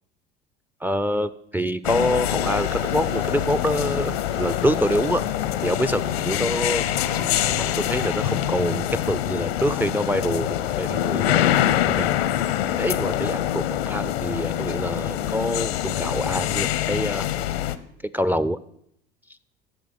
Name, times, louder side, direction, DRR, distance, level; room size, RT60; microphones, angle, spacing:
voice 1, 0.8-5.2 5.6-6.9 7.6-11.5 11.9-12.1 12.8-17.3 18.1-18.6, equal, 5° right, 14 dB, 0.3 m, -26 dB
sound 1, 1.8-17.8, left 12 dB, 75° left, 0.8 m, -25 dB
sound 2, 2.0-9.9, right 4 dB, 80° right, 0.8 m, -40 dB
10.5 x 6.1 x 6.9 m, 0.73 s
hypercardioid pair, 80°, 31 cm